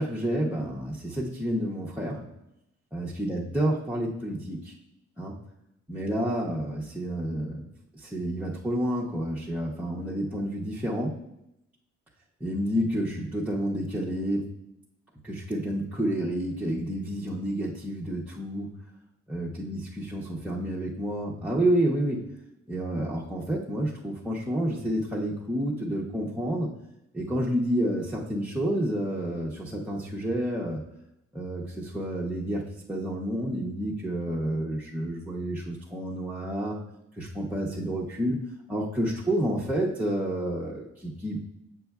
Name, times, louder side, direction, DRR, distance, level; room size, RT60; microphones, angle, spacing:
voice 1, 0.0-2.2 2.9-4.7 5.2-5.3 5.9-7.6 7.9-11.2 12.4-14.4 15.2-18.7 19.3-22.3 22.7-26.7 27.1-30.8 31.3-32.6 32.9-36.8 37.2-38.4 38.7-41.4, right 1 dB, 5° right, -4 dB, 0.5 m, -29 dB
7.8 x 6.3 x 2.3 m, 0.84 s
wide cardioid pair, 165°, 29 cm